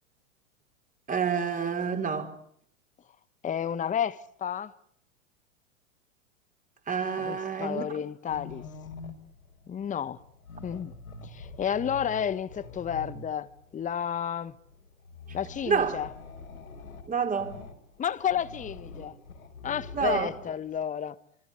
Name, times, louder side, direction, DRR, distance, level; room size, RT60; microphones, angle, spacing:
voice 1, 1.1-2.3 6.9-7.9 15.7-16.0 17.1-17.6 19.9-20.3, right 6 dB, 20° right, 4.3 m, -28 dB
voice 2, 3.4-4.7 7.2-8.6 9.7-10.2 10.6-10.9 11.2-14.5 15.3-16.1 18.0-19.2 19.6-21.2, left 8 dB, 20° left, 1.3 m, -31 dB
sound 1, 8.3-20.9, left 3 dB, 90° left, 5.5 m, -46 dB
26.0 x 25.5 x 8.5 m
hypercardioid pair, 105°, 41 cm